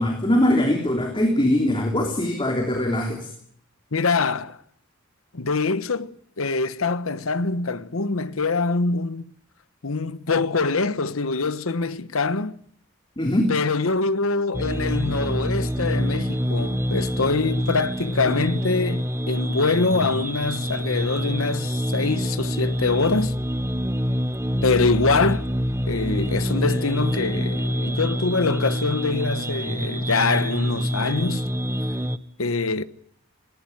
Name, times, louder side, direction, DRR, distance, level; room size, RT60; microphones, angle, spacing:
voice 1, 0.0-3.3 13.2-13.5, left 1 dB, 25° left, 3.3 m, -21 dB
voice 2, 3.9-4.6 5.3-9.2 9.8-12.6 13.5-23.4 24.6-25.5 25.9-31.5 32.4-32.8, left 3 dB, 80° left, 1.1 m, -24 dB
sound 1, 14.5-32.2, equal, 10° right, 0.9 m, -26 dB
19.0 x 19.0 x 9.3 m
head